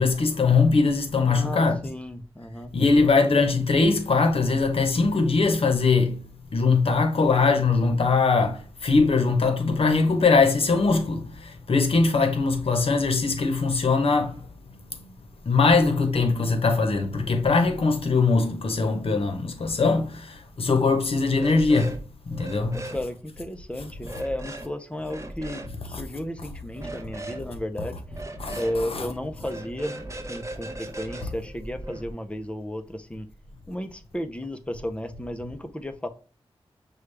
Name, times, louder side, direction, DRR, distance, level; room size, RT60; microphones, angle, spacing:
voice 1, 0.0-1.8 2.7-6.2 6.5-14.5 14.7-15.1 15.4-22.0 22.3-22.9 25.9-26.0 28.4-29.1, left 4 dB, 65° left, 0.9 m, -21 dB
voice 2, 1.2-2.7 22.7-28.0 28.6-33.3 33.7-36.1, left 1 dB, 10° left, 0.6 m, -33 dB
sound 1, 21.3-22.0 22.3-23.0 24.0-24.7 25.0-25.7 26.7-27.4 28.1-28.8 29.4-32.1, right 2 dB, 30° right, 0.7 m, -38 dB
6.4 x 2.3 x 3.2 m
wide cardioid pair, 65°, 10 cm